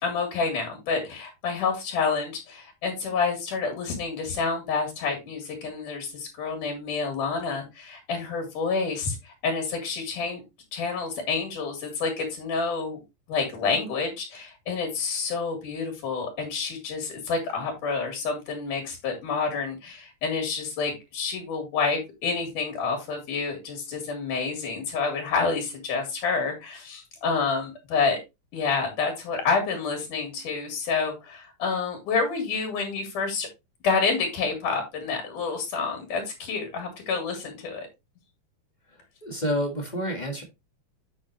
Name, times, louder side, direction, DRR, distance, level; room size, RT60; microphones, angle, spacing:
voice 1, 0.0-10.4 10.7-13.0 13.3-28.2 28.5-33.5 33.8-37.9, left 4 dB, 85° left, 3 dB, 3.9 m, -28 dB
voice 2, 38.9-40.4, equal, 35° left, 2 dB, 0.6 m, -29 dB
8.7 x 6.2 x 3.0 m, 0.23 s
omnidirectional pair, 3.6 m